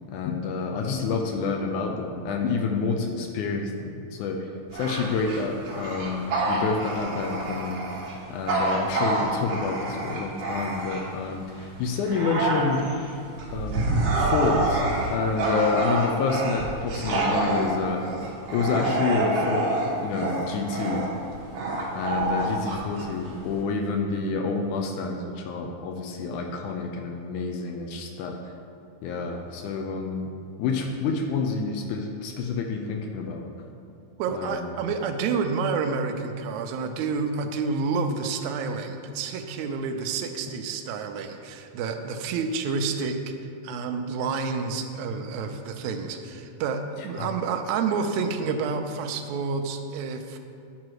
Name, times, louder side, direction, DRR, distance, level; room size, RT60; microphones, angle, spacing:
voice 1, 0.1-4.5 4.7-7.8 8.3-12.8 13.5-14.8 15.1-18.0 18.5-19.7 20.0-21.0 21.9-28.4 29.0-30.3 30.6-33.5 34.3-34.7 47.2-47.3, left 4 dB, 80° left, 3 dB, 2.1 m, -28 dB
Bark / Growling, 4.7-11.3 11.7-23.6, right 2 dB, 55° right, 1.9 m, -27 dB
voice 2, 34.2-43.3 43.6-50.4, right 5 dB, 75° right, 5 dB, 1.8 m, -29 dB
9.5 x 6.0 x 4.7 m, 2.5 s
omnidirectional pair, 3.6 m